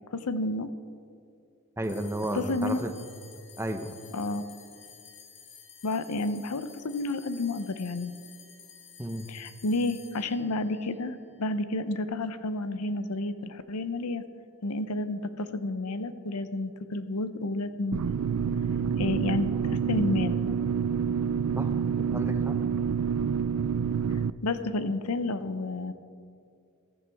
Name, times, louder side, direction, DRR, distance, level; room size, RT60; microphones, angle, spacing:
voice 1, 0.1-0.7 2.3-2.8 4.1-4.4 5.8-8.1 9.3-14.2 14.6-18.2 19.0-20.3 24.4-25.9, left 2 dB, 85° left, 11 dB, 0.7 m, -30 dB
sound 1, 1.8-12.5, left 6 dB, 55° left, 1.1 m, -52 dB
voice 2, 1.8-2.9 3.6-3.9 9.0-9.3 21.6-21.7 22.1-22.6, right 1 dB, 10° right, 7 dB, 0.7 m, -32 dB
sound 2, 17.9-24.3, right 7 dB, 85° right, 0.4 m, -27 dB
15.0 x 14.0 x 3.5 m, 2.3 s
head